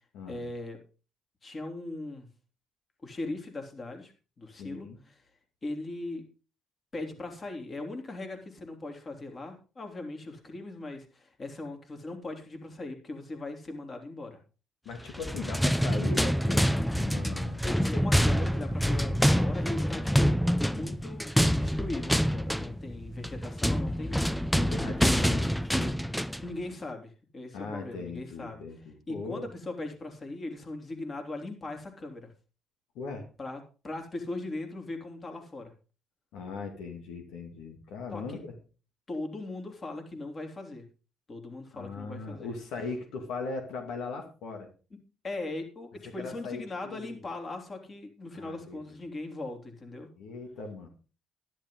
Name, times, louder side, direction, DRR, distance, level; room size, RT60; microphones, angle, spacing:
voice 1, 0.3-0.8 1.4-2.3 3.0-5.2 5.6-6.2 6.9-14.4 17.6-20.3 20.6-24.4 26.4-28.6 29.1-32.3 33.4-35.7 38.1-38.4 39.1-40.8 41.3-42.6 45.2-50.1, left 2 dB, 35° left, 4 dB, 3.2 m, -39 dB
voice 2, 4.6-5.0 14.8-16.7 16.9-17.6 24.5-26.0 27.5-29.5 32.9-33.3 36.3-38.6 41.7-44.7 46.0-47.3 48.3-49.0 50.2-50.9, left 4 dB, 85° left, 3 dB, 2.3 m, -39 dB
sound 1, 15.1-26.5, equal, ahead, 0.6 m, -26 dB
11.5 x 11.5 x 3.8 m, 0.35 s
cardioid pair, 85°, 0 cm